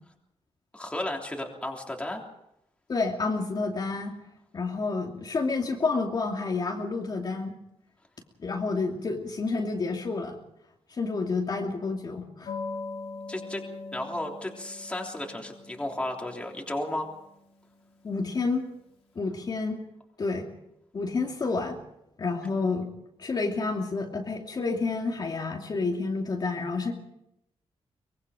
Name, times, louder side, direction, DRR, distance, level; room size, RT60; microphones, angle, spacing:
voice 1, 0.7-2.2 13.3-13.6 13.9-17.1, left 1 dB, 10° left, 0 dB, 3.4 m, -33 dB
voice 2, 2.9-4.1 4.5-7.5 8.4-10.4 11.0-12.5 18.0-18.6 19.1-19.8 20.2-20.5 20.9-21.8 22.2-22.9 23.2-26.9, left 3 dB, 40° left, 0 dB, 2.7 m, -29 dB
sound 1, 12.5-18.7, left 3 dB, 75° left, 4.0 m, -42 dB
24.0 x 22.5 x 5.1 m, 0.81 s
wide cardioid pair, 155°, 11 cm